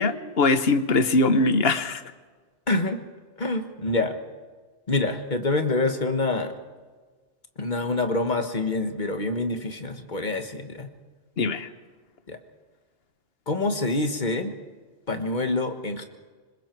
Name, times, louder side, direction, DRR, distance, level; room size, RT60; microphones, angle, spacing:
voice 1, 0.0-2.0 11.4-11.7, left 2 dB, 60° left, 11 dB, 1.3 m, -22 dB
voice 2, 2.7-3.0 3.4-4.2 4.9-6.5 7.6-10.9 12.3-12.4 13.5-14.5 15.1-16.1, left 2 dB, 40° left, 7 dB, 1.6 m, -26 dB
26.5 x 21.0 x 4.6 m, 1.4 s
omnidirectional pair, 1.2 m